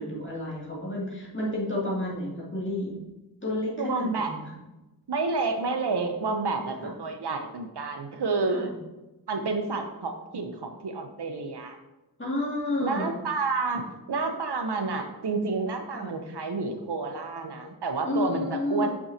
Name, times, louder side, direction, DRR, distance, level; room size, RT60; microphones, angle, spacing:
voice 1, 0.0-3.0 3.4-4.4 6.8-6.9 8.5-8.7 12.2-13.2 15.9-16.1 18.0-18.9, left 1 dB, 30° left, -5 dB, 2.2 m, -30 dB
voice 2, 3.8-4.3 5.1-8.7 9.3-11.8 12.8-13.8 14.1-18.9, right 4 dB, 80° right, 5 dB, 0.7 m, -29 dB
6.1 x 6.1 x 2.8 m, 1.0 s
wide cardioid pair, 45°, 40 cm